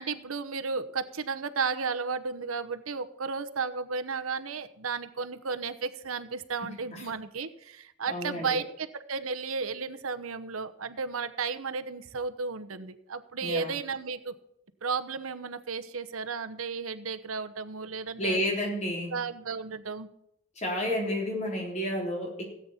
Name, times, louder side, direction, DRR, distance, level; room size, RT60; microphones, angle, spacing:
voice 1, 0.0-14.3 14.8-18.4 19.1-20.1, right 5 dB, 85° right, 10 dB, 1.0 m, -33 dB
voice 2, 6.6-7.0 8.1-8.5 13.4-13.7 18.2-19.1 20.6-22.5, left 1 dB, 35° left, 0 dB, 3.6 m, -31 dB
17.0 x 8.6 x 4.3 m, 0.80 s
head